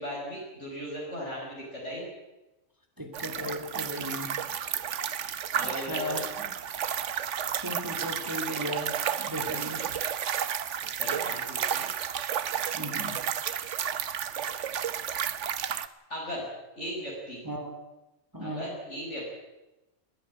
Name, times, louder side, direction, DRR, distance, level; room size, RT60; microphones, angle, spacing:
voice 1, 0.0-2.1 5.5-6.1 11.0-11.9 16.1-16.5 16.8-17.4 18.4-19.2, equal, 65° left, -4 dB, 6.1 m, -37 dB
voice 2, 3.0-4.4 5.7-6.5 7.6-8.9 9.2-9.8 12.7-13.2 17.4-17.8 18.3-18.7, equal, 15° right, 4 dB, 2.8 m, -36 dB
sound 1, 3.1-15.9, right 8 dB, 70° right, 1.2 m, -32 dB
21.0 x 14.0 x 9.8 m, 1.0 s
omnidirectional pair, 1.3 m